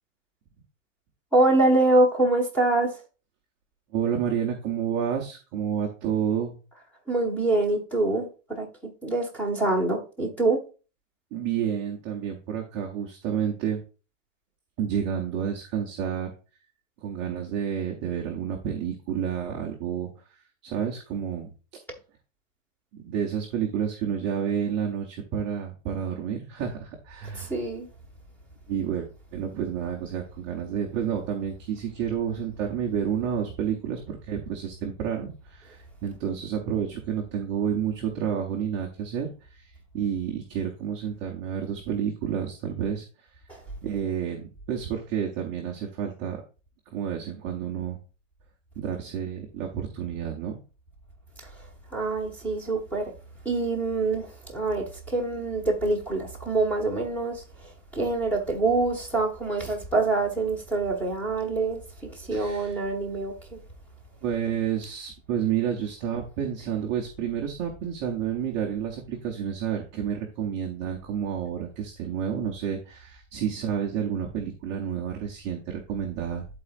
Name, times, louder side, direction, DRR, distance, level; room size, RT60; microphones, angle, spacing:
voice 1, 1.3-2.9 7.1-8.7 9.0-10.6 27.3-27.9 43.5-43.6 51.9-53.1 53.4-57.4 57.9-63.6, right 2 dB, 5° left, 1.3 m, -25 dB
voice 2, 3.9-6.6 11.3-13.8 14.8-16.3 17.0-20.1 20.6-21.5 23.0-27.5 28.7-43.3 43.8-46.4 46.9-48.0 48.8-50.5 62.3-62.7 64.2-76.5, right 8 dB, 15° right, 0.3 m, -30 dB
11.5 x 4.1 x 2.4 m
supercardioid pair, 160°, 38 cm